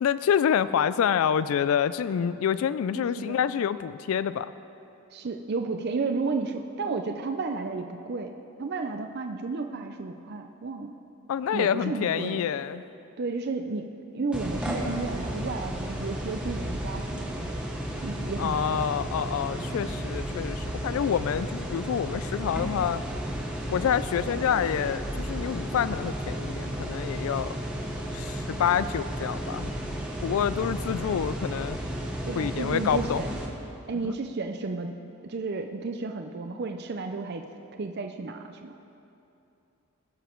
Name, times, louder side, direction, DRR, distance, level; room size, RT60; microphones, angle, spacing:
voice 1, 0.0-4.5 11.3-12.8 18.4-23.0 23.7-27.6 28.1-29.7 30.2-31.8 32.4-33.2, left 8 dB, 70° left, 15 dB, 0.3 m, -27 dB
voice 2, 2.9-3.6 5.1-11.0 11.5-12.4 13.2-17.5 18.0-19.0 32.2-33.3 33.9-34.9 35.2-37.4 37.8-38.7, right 3 dB, 50° right, 6 dB, 0.5 m, -33 dB
sound 1, 14.3-33.5, equal, 5° right, 1.1 m, -33 dB
20.0 x 7.2 x 4.4 m, 2.8 s
head